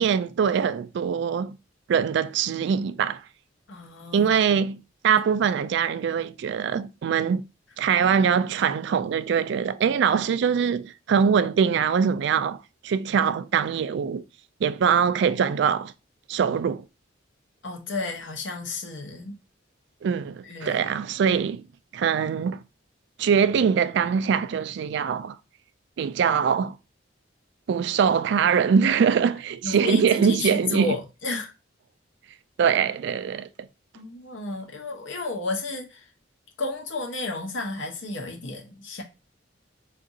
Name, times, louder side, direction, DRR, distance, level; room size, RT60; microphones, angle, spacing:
voice 1, 0.0-1.6 1.9-3.2 4.1-7.4 7.8-12.6 12.8-14.2 14.6-15.9 16.3-16.9 20.0-21.6 21.9-22.6 23.2-25.4 26.0-26.7 27.7-30.9 32.6-33.5, right 7 dB, 60° right, 0.3 m, -23 dB
voice 2, 3.7-4.3 17.6-19.3 20.4-20.8 29.6-31.5 33.9-36.1 36.6-39.0, left 3 dB, 70° left, 0.9 m, -32 dB
3.6 x 2.5 x 3.9 m
head